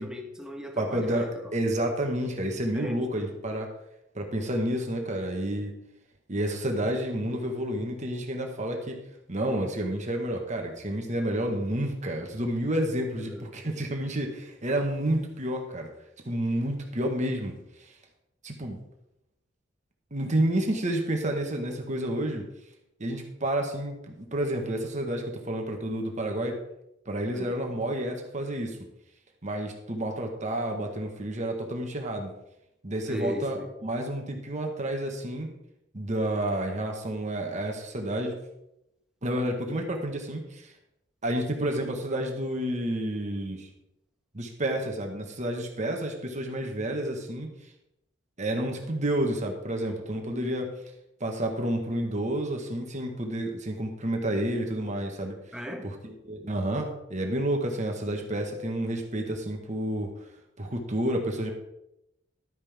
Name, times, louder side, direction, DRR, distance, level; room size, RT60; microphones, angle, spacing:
voice 1, 0.0-1.6 2.7-3.4 13.2-13.5 27.3-27.7 33.1-33.7 55.5-56.0, equal, 5° right, 2 dB, 1.4 m, -38 dB
voice 2, 0.8-3.7 4.1-5.7 6.3-9.0 9.3-15.9 16.2-17.5 18.4-18.8 20.1-22.4 23.0-26.6 27.1-28.8 29.4-32.3 32.8-35.5 35.9-38.3 39.2-40.7 41.2-43.7 44.3-47.5 48.4-50.7 51.2-55.3 56.0-60.1 60.6-61.5, right 1 dB, 40° right, 2 dB, 1.6 m, -30 dB
12.5 x 9.6 x 3.6 m, 0.85 s
head